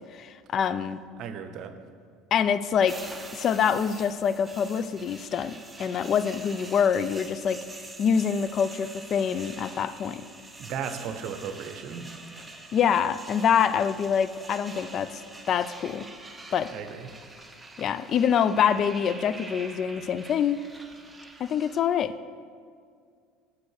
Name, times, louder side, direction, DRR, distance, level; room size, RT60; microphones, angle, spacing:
voice 1, 0.0-1.0 2.3-3.0 3.3-5.5 5.8-7.6 8.0-10.2 12.7-15.2 15.5-16.1 16.5-16.7 17.8-20.6 21.4-22.1, left 7 dB, 50° left, 14 dB, 0.3 m, -25 dB
voice 2, 1.2-1.7 10.6-12.1 16.7-17.1, right 7 dB, 60° right, 9 dB, 0.7 m, -35 dB
sound 1, 2.9-21.8, right 2 dB, 10° right, 0.9 m, -45 dB
8.1 x 5.1 x 6.4 m, 2.2 s
hypercardioid pair, 75°, 0 cm